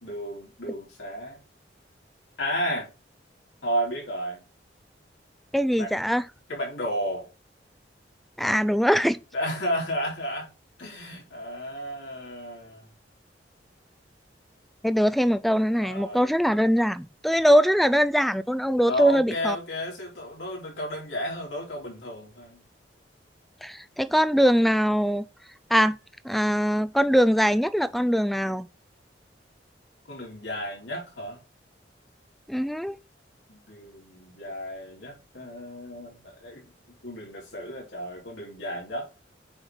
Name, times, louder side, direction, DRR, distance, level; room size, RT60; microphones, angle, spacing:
voice 1, 0.0-1.4 2.4-2.9 3.6-4.4 5.8-5.9 6.5-7.3 9.3-10.5 10.8-12.9 15.8-16.4 17.5-17.6 18.9-22.6 30.1-31.4 33.5-39.1, equal, 90° left, 3.7 m, -33 dB
voice 2, 5.5-6.2 8.4-9.2 14.8-19.6 23.6-25.2 25.7-26.0 26.2-28.7 32.5-33.0, equal, ahead, 0.3 m, -22 dB
8.7 x 3.9 x 4.8 m
head